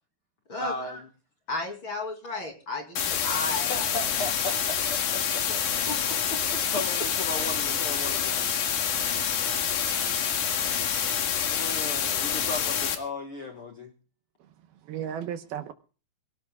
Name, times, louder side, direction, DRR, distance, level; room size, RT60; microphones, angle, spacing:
voice 1, 0.6-1.1 3.7-6.0 6.7-8.5 11.5-13.9, left 3 dB, 85° left, 1.2 m, -36 dB
voice 2, 1.5-3.9 5.9-6.0 6.3-6.6, left 2 dB, 35° left, 2.7 m, -34 dB
sound 1, 3.0-13.0, left 8 dB, 55° left, 2.8 m, -27 dB
voice 3, 10.4-11.3 14.9-15.7, right 9 dB, 75° right, 2.6 m, -37 dB
24.0 x 17.5 x 2.3 m
omnidirectional pair, 5.0 m